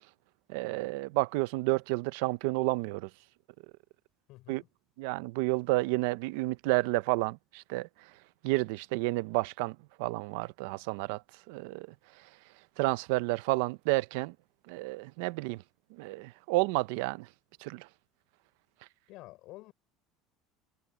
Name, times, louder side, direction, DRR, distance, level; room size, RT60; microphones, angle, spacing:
voice 1, 0.5-3.1 4.5-4.6 5.0-7.9 8.4-11.2 11.5-11.9 12.8-14.3 14.7-15.6 16.0-17.3 17.6-17.9, right 22 dB, 80° right, 0.6 m, -30 dB
voice 2, 4.3-4.7 19.1-19.7, left 19 dB, 60° left, 3.8 m, -49 dB
cardioid pair, 140°, 0 cm